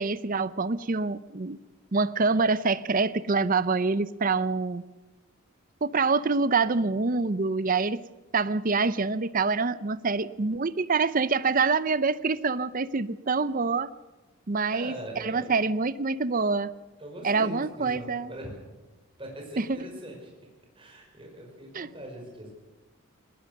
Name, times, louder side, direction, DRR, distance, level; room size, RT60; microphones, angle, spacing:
voice 1, 0.0-1.6 1.9-4.8 5.8-8.0 8.3-13.9 14.5-16.7 17.2-18.3 19.6-19.8 21.7-21.9, right 4 dB, 40° right, 16 dB, 0.6 m, -26 dB
voice 2, 14.7-15.5 17.0-18.5 19.2-20.3 20.7-22.5, right 1 dB, 25° right, 0 dB, 5.4 m, -41 dB
20.0 x 19.5 x 6.7 m, 1.2 s
head